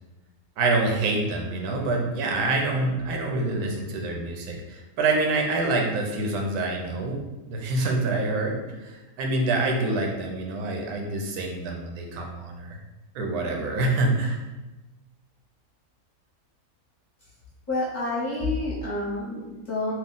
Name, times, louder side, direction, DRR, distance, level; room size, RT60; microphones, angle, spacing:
voice 1, 0.6-7.2 7.5-12.8 13.1-14.4, right 2 dB, 90° right, 1 dB, 1.1 m, -26 dB
voice 2, 17.7-19.9, left 2 dB, 40° left, -8 dB, 0.8 m, -28 dB
3.0 x 2.3 x 3.7 m, 1.1 s
omnidirectional pair, 1.6 m